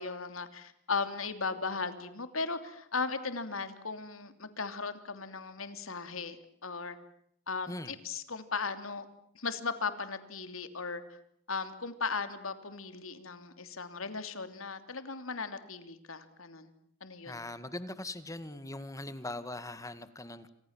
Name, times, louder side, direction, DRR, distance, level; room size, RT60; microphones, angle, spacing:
voice 1, 0.0-7.0 7.5-9.0 9.3-11.0 11.5-16.7 17.0-17.4, left 4 dB, 80° left, 10 dB, 3.1 m, -37 dB
voice 2, 17.2-20.5, left 2 dB, 15° left, 12 dB, 1.9 m, -41 dB
29.5 x 27.0 x 7.4 m, 0.72 s
head